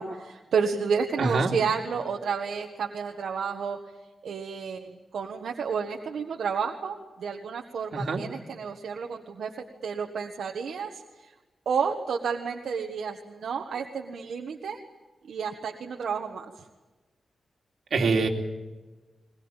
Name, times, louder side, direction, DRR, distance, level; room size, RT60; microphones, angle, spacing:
voice 1, 0.0-3.8 4.2-9.5 9.8-11.0 11.6-14.8 15.3-16.4, right 6 dB, 90° right, 2 dB, 1.5 m, -31 dB
voice 2, 1.2-1.5 7.9-8.2 17.9-18.3, right 4 dB, 65° right, 1 dB, 2.9 m, -24 dB
21.5 x 21.0 x 9.0 m, 1.2 s
wide cardioid pair, 145°, 0 cm